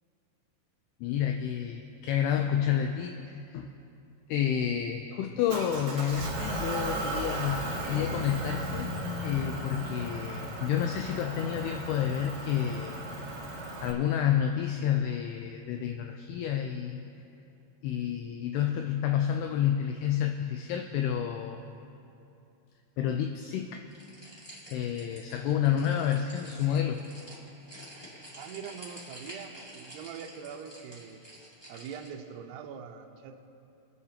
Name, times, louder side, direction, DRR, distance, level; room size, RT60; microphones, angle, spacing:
voice 1, 1.0-3.7 4.3-8.9 9.2-13.1 13.8-17.1 17.8-21.6 23.0-23.8 24.2-24.4 24.7-27.0, left 9 dB, 80° left, 4 dB, 2.4 m, -29 dB
Motor vehicle (road) / Engine, 5.5-13.9, right 2 dB, 55° right, 1.7 m, -36 dB
sound 1, 7.3-11.3, left 2 dB, 50° left, 2.1 m, -41 dB
sound 2, 23.9-32.1, equal, 15° left, 1.0 m, -49 dB
voice 2, 28.4-31.2 31.7-33.4, right 7 dB, 75° right, 3 dB, 2.8 m, -43 dB
28.0 x 9.5 x 2.9 m, 2.7 s
omnidirectional pair, 5.1 m